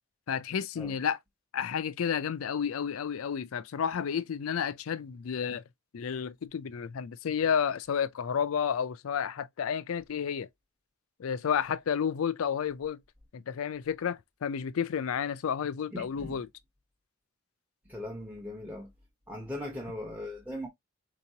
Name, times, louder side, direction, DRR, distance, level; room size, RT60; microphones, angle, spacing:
voice 1, 0.3-1.2 1.5-5.6 5.9-10.5 11.2-13.0 13.3-16.5, left 7 dB, 80° left, 0.4 m, -31 dB
voice 2, 15.9-16.4 17.9-18.9 19.3-20.7, left 1 dB, 10° right, 0.9 m, -39 dB
4.4 x 2.9 x 2.7 m
head